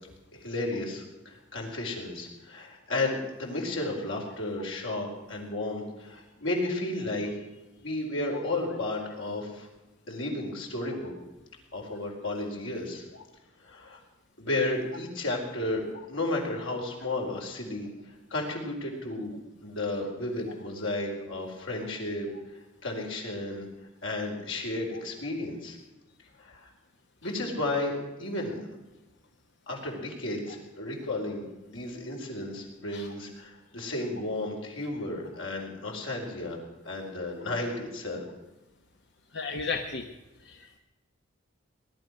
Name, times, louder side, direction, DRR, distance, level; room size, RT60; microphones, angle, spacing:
voice 1, 0.3-7.4 7.8-9.7 10.1-11.1 11.7-13.0 13.6-14.0 14.4-17.9 18.3-19.3 19.6-22.3 22.8-23.7 24.0-25.8 26.4-26.7 27.2-28.7 29.7-36.6 36.8-38.3, left 2 dB, 85° left, 0 dB, 4.5 m, -33 dB
voice 2, 39.3-40.1 40.4-40.8, left 4 dB, 60° left, 4 dB, 1.0 m, -34 dB
20.0 x 11.5 x 6.3 m, 1.0 s
head